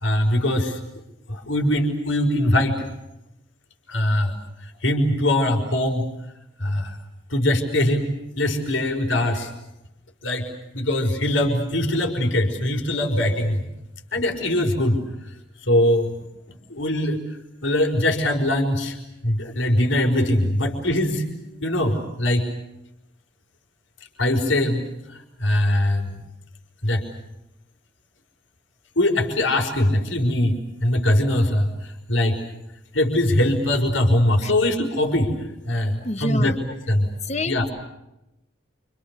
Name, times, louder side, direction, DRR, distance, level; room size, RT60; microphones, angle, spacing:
voice 1, 0.0-0.8 1.3-2.8 3.9-4.4 4.6-6.1 6.6-7.0 7.3-9.5 10.2-13.7 14.1-15.0 15.6-16.1 16.7-17.2 17.6-19.0 19.2-22.4 24.2-24.8 25.4-26.1 26.8-27.0 29.0-32.4 32.9-35.4 35.7-36.6 36.9-37.1 37.5-37.7, left 1 dB, 80° left, 3 dB, 5.4 m, -22 dB
voice 2, 36.0-36.6 37.2-37.7, left 2 dB, 35° left, 10 dB, 1.4 m, -28 dB
30.0 x 27.5 x 6.9 m, 0.91 s
head